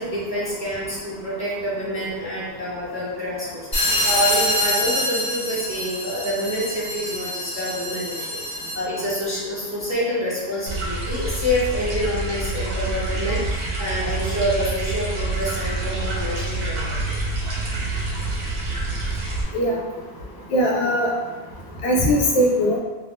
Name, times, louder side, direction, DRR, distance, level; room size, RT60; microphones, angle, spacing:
voice 1, 0.0-17.2, equal, 20° right, -9 dB, 0.5 m, -27 dB
sound 1, 3.7-8.9, left 1 dB, 30° left, 1.0 m, -25 dB
sound 2, 10.7-19.4, right 2 dB, 65° right, 0.9 m, -27 dB
voice 2, 20.5-21.1 21.8-22.8, equal, 80° left, -1 dB, 0.9 m, -19 dB
2.5 x 2.4 x 3.4 m, 1.3 s
omnidirectional pair, 1.1 m